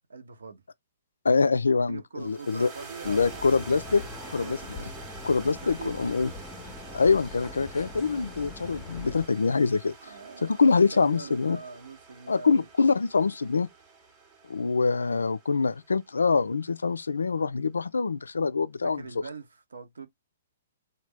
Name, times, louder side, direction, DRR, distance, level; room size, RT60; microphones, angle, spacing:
voice 1, 0.1-0.6 1.9-3.4 4.2-4.9 5.6-6.1 10.0-12.7 18.8-20.1, right 4 dB, 65° right, 0.8 m, -43 dB
voice 2, 1.2-2.7 3.1-4.0 4.3-4.6 5.2-6.3 6.9-9.9 10.4-11.6 12.3-13.7 14.5-19.0, left 4 dB, 70° left, 0.3 m, -24 dB
sound 1, 2.2-16.6, right 5 dB, 25° right, 0.8 m, -47 dB
sound 2, 3.0-9.3, left 3 dB, 15° left, 0.6 m, -43 dB
3.3 x 2.3 x 3.2 m
figure-of-eight pair, 120°, 0 cm